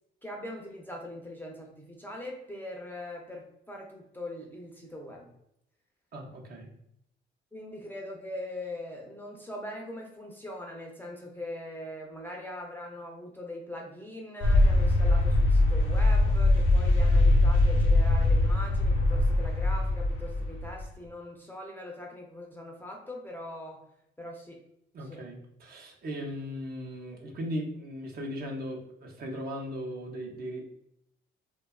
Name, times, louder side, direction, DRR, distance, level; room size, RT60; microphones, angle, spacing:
voice 1, 0.2-5.3 7.5-23.8 24.2-24.6 25.0-25.2, left 1 dB, 10° left, -1 dB, 0.5 m, -41 dB
voice 2, 6.1-6.7 24.9-30.6, equal, 50° right, 0 dB, 0.6 m, -37 dB
sound 1, 14.4-20.9, left 2 dB, 80° left, 0.6 m, -22 dB
2.7 x 2.2 x 2.2 m, 0.77 s
cardioid pair, 90°, 20 cm